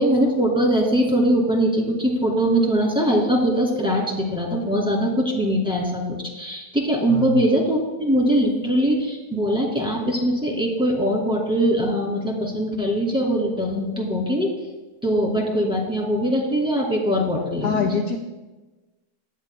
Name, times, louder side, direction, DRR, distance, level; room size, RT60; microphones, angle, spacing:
voice 1, 0.0-14.5 15.0-18.0, equal, 5° right, -2 dB, 2.2 m, -22 dB
voice 2, 7.1-7.4 17.6-18.2, left 5 dB, 65° left, 4 dB, 1.1 m, -24 dB
18.5 x 11.0 x 2.3 m, 1.2 s
omnidirectional pair, 1.8 m